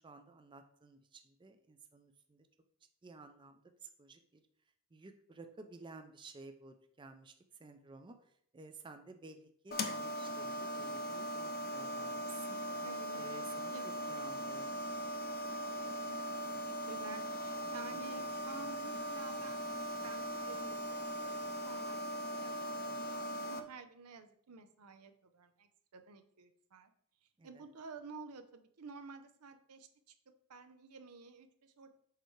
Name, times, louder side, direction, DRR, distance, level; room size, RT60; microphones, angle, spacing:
voice 1, 0.0-2.5 3.0-4.4 4.9-7.3 7.6-12.6 13.1-14.8 17.9-18.2 27.4-27.6, right 3 dB, 20° right, 7 dB, 0.4 m, -54 dB
sound 1, 9.7-23.6, equal, 40° left, 0.6 m, -40 dB
voice 2, 12.8-13.2 13.7-13.9 16.1-16.2 16.7-19.7 20.0-22.0 22.4-26.9 27.4-29.9 30.5-32.0, right 4 dB, 85° right, 8 dB, 0.7 m, -52 dB
6.6 x 4.6 x 3.2 m, 0.66 s
head